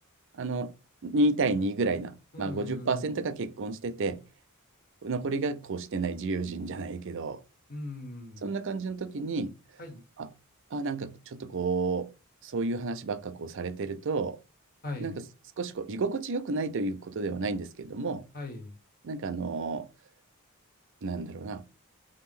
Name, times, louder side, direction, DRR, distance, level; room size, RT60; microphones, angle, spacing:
voice 1, 0.3-0.8 1.0-4.2 5.0-7.4 8.4-9.6 10.2-10.3 10.7-12.1 12.4-14.4 15.0-15.2 15.6-18.3 19.0-19.9 21.0-21.8, right 3 dB, 60° right, 0.5 m, -31 dB
voice 2, 2.3-3.0 7.7-8.5 9.8-10.0 14.8-15.1 18.3-18.7, left 2 dB, 45° left, 1.5 m, -39 dB
3.7 x 3.1 x 4.4 m
head